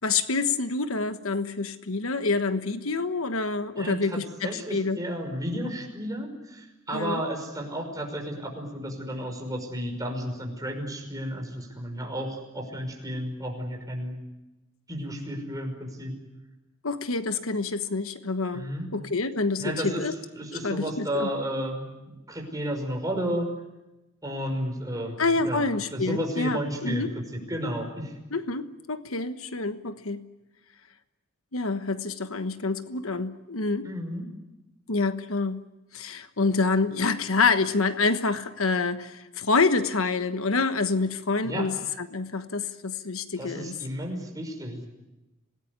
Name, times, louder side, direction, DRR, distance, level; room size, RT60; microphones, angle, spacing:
voice 1, 0.0-5.0 6.9-7.2 16.8-20.1 20.6-21.3 25.2-27.1 28.3-30.2 31.5-33.9 34.9-35.6 35.9-43.8, left 3 dB, 85° left, 10 dB, 1.3 m, -27 dB
voice 2, 3.8-14.2 14.9-16.1 18.5-18.9 19.6-20.0 20.3-23.5 24.2-25.2 25.4-25.6 25.9-28.1 33.8-34.2 41.4-41.7 43.4-44.9, equal, 15° right, 2 dB, 5.7 m, -32 dB
27.0 x 19.0 x 9.6 m, 1.0 s
head